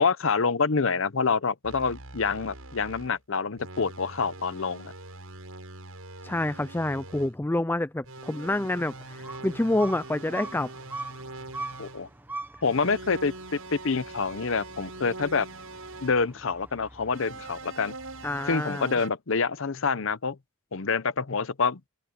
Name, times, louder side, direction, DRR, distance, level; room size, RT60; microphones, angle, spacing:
voice 1, 0.0-4.9 11.8-12.1 12.6-13.3 13.7-15.5 16.0-17.9 18.5-20.4 20.7-21.8, left 5 dB, 60° left, 0.8 m, -27 dB
sound 1, 1.6-3.2 3.6-7.4 8.0-12.1 12.6-16.2 17.1-19.1, right 2 dB, 80° right, 7.4 m, -43 dB
voice 2, 6.2-10.7 18.2-18.9, left 1 dB, 10° left, 0.4 m, -28 dB
sound 2, 8.4-18.6, right 2 dB, 10° right, 1.1 m, -44 dB
open air
head